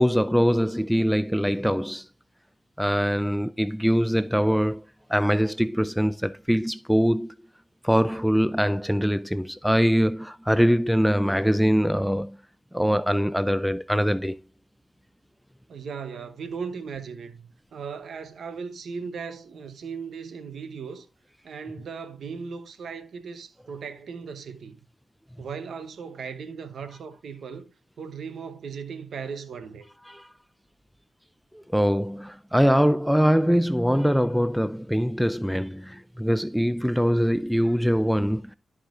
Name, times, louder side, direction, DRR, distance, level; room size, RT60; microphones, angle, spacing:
voice 1, 0.0-2.1 2.8-4.8 5.1-7.3 7.8-12.4 12.7-14.4 30.1-30.3 31.5-38.5, equal, ahead, 0.4 m, -23 dB
voice 2, 15.7-21.1 21.4-24.8 25.4-27.7 28.0-29.9, right 5 dB, 75° right, 1.0 m, -37 dB
13.5 x 4.8 x 2.5 m
cardioid pair, 55°, 0 cm